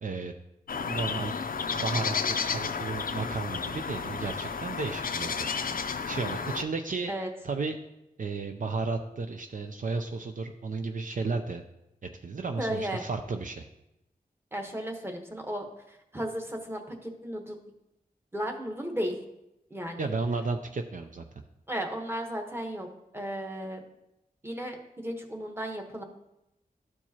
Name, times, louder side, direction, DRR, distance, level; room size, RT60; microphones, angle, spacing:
voice 1, 0.0-0.3 0.8-1.3 1.7-5.5 6.1-7.1 7.4-7.8 8.2-11.6 12.2-13.6 20.0-21.2, right 4 dB, 55° right, 5 dB, 0.5 m, -33 dB
sound 1, 0.7-6.6, left 5 dB, 65° left, 0.5 m, -32 dB
voice 2, 12.6-13.0 14.5-15.7 16.1-17.6 18.3-19.2 19.7-20.1 21.7-22.9 23.1-23.8 24.4-26.0, equal, 15° right, 3 dB, 1.1 m, -34 dB
12.5 x 4.5 x 2.9 m, 0.88 s
wide cardioid pair, 65°, 16 cm